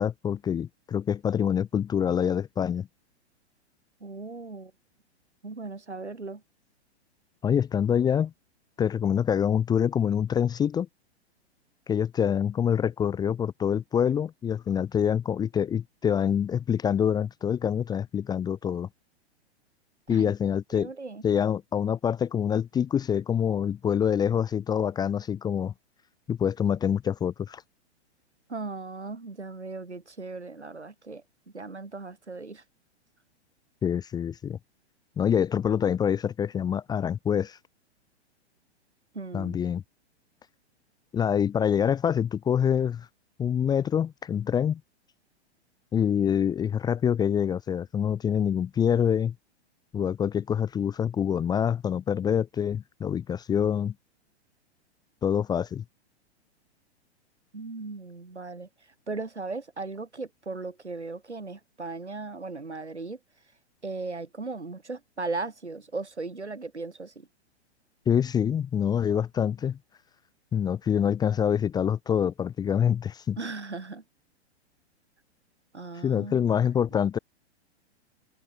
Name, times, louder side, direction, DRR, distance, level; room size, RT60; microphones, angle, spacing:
voice 1, 0.0-2.9 7.4-8.3 8.8-10.9 11.9-18.9 20.1-20.9 21.2-25.7 26.3-27.6 33.8-34.6 35.2-37.6 39.3-39.8 41.1-43.1 43.4-44.8 45.9-49.3 49.9-53.9 55.2-55.8 68.1-69.8 70.5-73.4 76.0-77.2, left 8 dB, 10° left, 0.8 m, -26 dB
voice 2, 4.0-4.7 5.4-6.4 20.1-20.3 20.7-21.2 28.5-31.2 31.5-32.6 39.1-39.6 57.5-58.7 59.1-63.2 63.8-67.3 73.4-74.0 75.7-76.4, right 3 dB, 80° right, 7.0 m, -37 dB
figure-of-eight pair, 110°, 34 cm